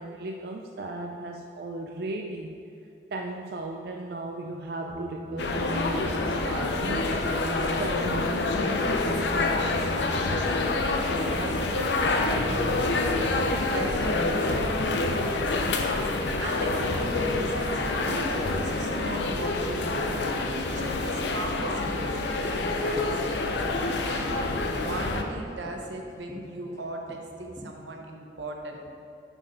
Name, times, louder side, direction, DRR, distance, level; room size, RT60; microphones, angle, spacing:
voice 1, 0.0-2.5 3.1-7.1 7.8-9.6, right 2 dB, 55° right, 2 dB, 0.4 m, -36 dB
sound 1, 4.9-12.6, left 1 dB, 35° left, 1.0 m, -38 dB
sound 2, 5.4-25.2, left 2 dB, 75° left, 0.6 m, -27 dB
voice 2, 10.7-28.8, right 1 dB, 85° right, 1 dB, 0.9 m, -38 dB
sound 3, 13.4-26.8 27.1-27.7, left 1 dB, 15° left, 0.4 m, -43 dB
6.3 x 5.4 x 5.2 m, 2.5 s
head